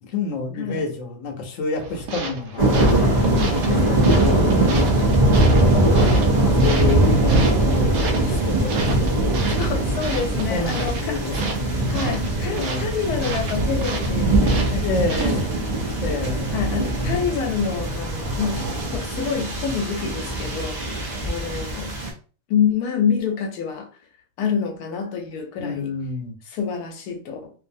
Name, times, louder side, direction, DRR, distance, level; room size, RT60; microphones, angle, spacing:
voice 1, 0.0-2.9 3.3-6.0 6.3-9.2 9.5-12.1 12.4-12.9 14.7-15.6 16.0-16.5 25.6-26.4, left 4 dB, 65° left, 1.0 m, -29 dB
sound 1, 1.8-15.7, right 3 dB, 75° right, 1.0 m, -33 dB
sound 2, 2.6-22.1, right 1 dB, 40° right, 0.7 m, -21 dB
voice 2, 9.6-11.2 11.9-15.3 16.5-21.9 22.5-23.9 24.4-25.9 26.5-27.5, left 6 dB, 90° left, 1.1 m, -27 dB
2.7 x 2.5 x 2.6 m
omnidirectional pair, 1.6 m